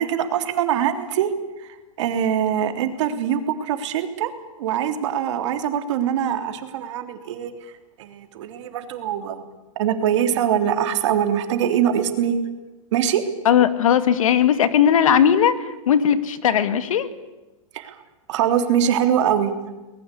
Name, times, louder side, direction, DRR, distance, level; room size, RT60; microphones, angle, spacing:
voice 1, 0.0-4.3 4.6-7.7 8.0-9.4 9.8-12.4 12.9-13.3 17.7-18.0 18.3-19.5, right 9 dB, 60° right, 7 dB, 3.3 m, -23 dB
voice 2, 13.4-17.1, left 9 dB, 80° left, 11 dB, 2.2 m, -18 dB
23.0 x 20.5 x 8.5 m, 1.1 s
hypercardioid pair, 150°, 17 cm